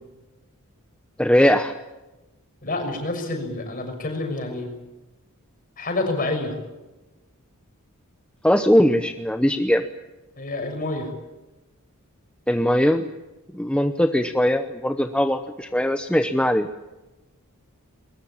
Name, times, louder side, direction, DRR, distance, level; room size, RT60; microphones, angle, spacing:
voice 1, 1.2-1.7 8.4-9.9 12.5-13.1 13.5-16.7, equal, 5° left, 7 dB, 0.8 m, -20 dB
voice 2, 2.6-4.7 5.8-6.6 10.4-11.1, left 2 dB, 40° left, 4 dB, 6.4 m, -28 dB
22.0 x 21.0 x 8.7 m, 1.1 s
head